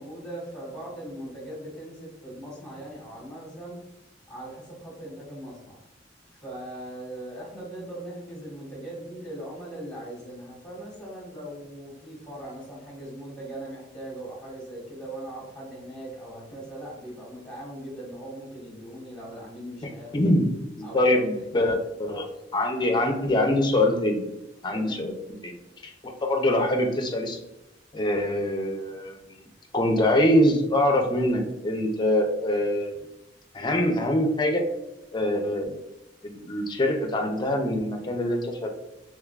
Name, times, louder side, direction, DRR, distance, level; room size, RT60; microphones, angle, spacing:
voice 1, 0.0-3.8 4.3-5.8 6.3-20.3 20.8-21.7 24.7-25.0, right 1 dB, 5° left, -5 dB, 1.4 m, -40 dB
voice 2, 20.1-20.5 20.9-21.7 22.0-22.3 22.5-24.2 24.6-25.1 25.4-25.5 25.8-27.4 27.9-29.2 29.7-33.0 33.5-34.6 35.1-35.8 36.2-38.7, left 1 dB, 25° left, 3 dB, 0.5 m, -24 dB
3.6 x 3.0 x 2.3 m, 0.92 s
head